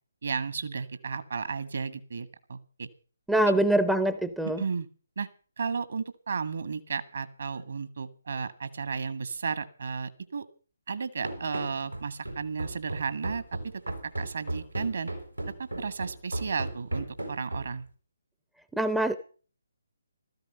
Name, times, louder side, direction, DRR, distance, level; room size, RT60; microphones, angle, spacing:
voice 1, 0.2-2.9 4.6-4.9 5.2-5.3 5.6-10.4 10.9-13.6 14.0-15.1 15.6-17.8, right 5 dB, 55° right, 13 dB, 1.8 m, -33 dB
voice 2, 3.3-4.6 18.7-19.2, right 1 dB, ahead, 11 dB, 0.6 m, -24 dB
Run, 11.2-17.9, right 1 dB, 90° right, 5.7 m, -36 dB
15.5 x 14.0 x 5.6 m, 0.40 s
figure-of-eight pair, 140°, 0 cm